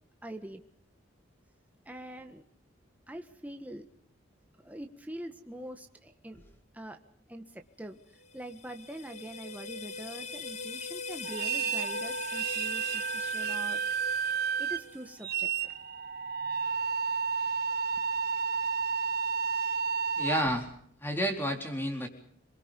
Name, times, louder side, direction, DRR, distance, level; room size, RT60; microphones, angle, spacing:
voice 1, 0.2-0.6 1.8-2.4 3.1-3.8 4.6-6.4 6.7-7.0 7.3-8.0 8.3-13.8 14.6-15.5, right 1 dB, 10° right, 5 dB, 1.5 m, -44 dB
sound 1, 8.2-15.3, left 4 dB, 35° left, 1.0 m, -41 dB
sound 2, 11.2-20.4, right 6 dB, 50° right, 1.1 m, -31 dB
voice 2, 20.2-20.7 21.0-22.1, equal, 10° left, 3 dB, 4.1 m, -30 dB
27.0 x 23.0 x 5.3 m, 0.63 s
head